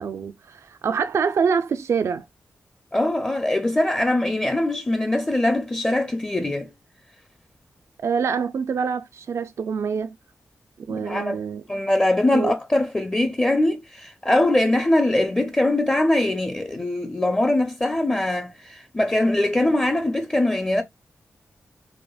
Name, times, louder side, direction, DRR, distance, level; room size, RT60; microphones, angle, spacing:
voice 1, 0.0-2.3 8.0-10.2 10.8-11.6 12.3-12.5, right 6 dB, 65° right, 0.3 m, -25 dB
voice 2, 2.9-6.7 11.0-11.4 11.7-20.8, left 1 dB, 20° left, 0.5 m, -22 dB
4.8 x 2.0 x 2.2 m
cardioid pair, 80°, 5 cm